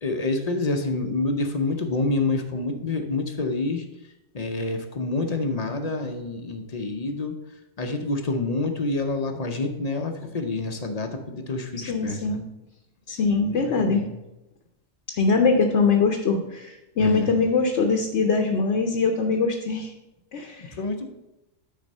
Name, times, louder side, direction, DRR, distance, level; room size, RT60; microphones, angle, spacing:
voice 1, 0.0-3.8 4.3-7.3 7.8-12.4 13.4-14.1 17.0-17.3 20.8-21.1, left 3 dB, 40° left, 5 dB, 0.7 m, -27 dB
voice 2, 11.8-12.4 13.1-14.0 15.1-19.9 20.3-20.7, left 4 dB, 65° left, 4 dB, 1.0 m, -22 dB
9.4 x 4.2 x 5.3 m, 0.97 s
omnidirectional pair, 1.3 m